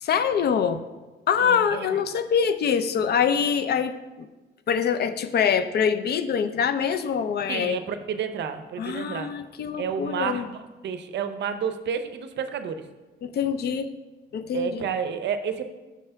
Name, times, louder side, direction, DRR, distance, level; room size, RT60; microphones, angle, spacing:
voice 1, 0.0-0.8 1.3-4.3 4.7-7.8 8.8-10.4 13.2-13.9 14.3-14.9, left 7 dB, 55° left, 11 dB, 0.5 m, -24 dB
voice 2, 1.4-2.0 7.5-9.3 9.8-12.9 14.5-15.6, right 7 dB, 60° right, 9 dB, 0.6 m, -30 dB
6.2 x 3.3 x 5.5 m, 1.2 s
cardioid pair, 90°, 20 cm